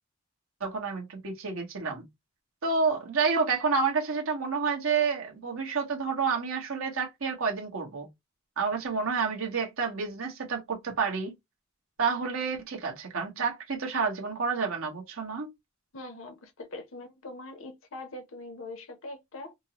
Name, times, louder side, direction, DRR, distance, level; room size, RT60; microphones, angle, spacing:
voice 1, 0.6-2.0 2.6-8.1 8.6-11.3 12.0-15.5, right 5 dB, 90° right, 1.2 m, -29 dB
voice 2, 15.9-19.5, left 2 dB, 75° left, 0.8 m, -42 dB
5.2 x 2.0 x 2.8 m
head